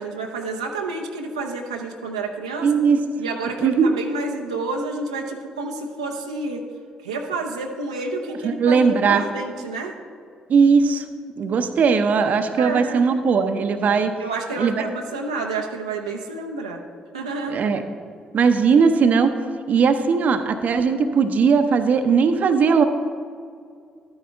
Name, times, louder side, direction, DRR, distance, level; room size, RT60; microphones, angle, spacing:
voice 1, 0.0-2.8 3.2-6.6 7.0-9.9 12.6-13.1 14.2-16.8 17.1-17.6, right 3 dB, 90° right, 1 dB, 0.6 m, -29 dB
voice 2, 2.6-3.0 3.6-3.9 8.4-9.2 10.5-11.0 11.4-14.1 14.6-14.8 17.5-17.8 18.3-19.3 19.7-22.8, right 5 dB, 55° right, 8 dB, 0.7 m, -18 dB
12.0 x 9.5 x 3.5 m, 2.2 s
hypercardioid pair, 45°, 3 cm